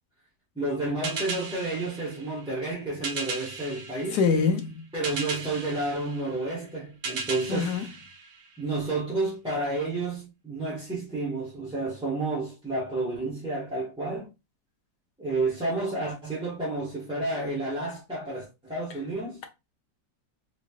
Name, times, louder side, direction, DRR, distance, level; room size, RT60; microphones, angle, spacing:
voice 1, 0.5-4.2 4.9-7.8 8.6-14.3 15.2-19.4, right 2 dB, 5° right, 0.8 m, -30 dB
sound 1, 1.0-8.9, right 4 dB, 60° right, 0.8 m, -37 dB
voice 2, 4.1-4.9 7.5-7.9, left 5 dB, 70° left, 1.0 m, -25 dB
3.7 x 3.2 x 2.3 m
omnidirectional pair, 2.0 m